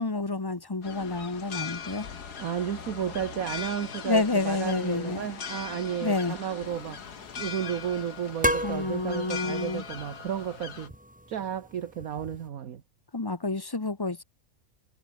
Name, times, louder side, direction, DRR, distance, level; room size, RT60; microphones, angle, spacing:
voice 1, 0.0-2.0 4.0-5.2 6.0-6.4 8.6-9.8 13.1-14.2, left 3 dB, 20° left, 0.9 m, -29 dB
sound 1, 0.8-10.9, left 7 dB, 80° left, 2.3 m, -40 dB
Water / Sink (filling or washing), 1.3-7.0, right 2 dB, 45° right, 5.4 m, -54 dB
voice 2, 2.4-10.9 11.3-12.8, right 9 dB, 65° right, 1.5 m, -33 dB
sound 2, 6.6-12.5, equal, 5° right, 4.2 m, -36 dB
omnidirectional pair, 1.7 m